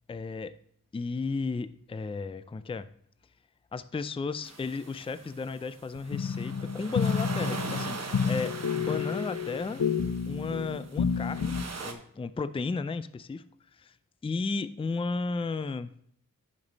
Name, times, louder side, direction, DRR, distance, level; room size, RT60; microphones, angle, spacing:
voice 1, 0.1-0.5 0.9-2.9 3.7-9.8 10.3-13.4 13.8-13.9 14.2-15.9, left 4 dB, 15° left, 14 dB, 0.4 m, -34 dB
sound 1, 4.4-11.9, right 4 dB, 50° right, 1.1 m, -41 dB
sound 2, 6.1-11.7, left 6 dB, 60° left, 0.7 m, -30 dB
10.5 x 5.3 x 3.9 m, 0.66 s
cardioid pair, 55°, 34 cm